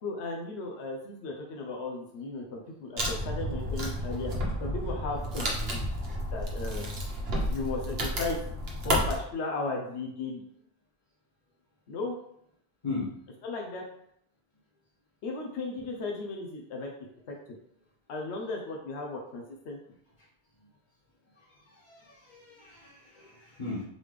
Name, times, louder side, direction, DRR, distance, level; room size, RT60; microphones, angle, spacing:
voice 1, 0.0-4.3 4.6-5.9 6.3-7.0 7.5-8.4 8.8-10.4 11.9-12.1 13.4-13.8 15.2-16.9 17.3-17.4 18.1-19.8, left 3 dB, 90° left, 0 dB, 1.0 m, -35 dB
Wood, 3.0-9.2, equal, 70° right, 1.2 m, -31 dB
voice 2, 21.5-23.8, left 3 dB, 45° left, -6 dB, 1.5 m, -38 dB
4.0 x 3.3 x 3.2 m, 0.71 s
omnidirectional pair, 1.1 m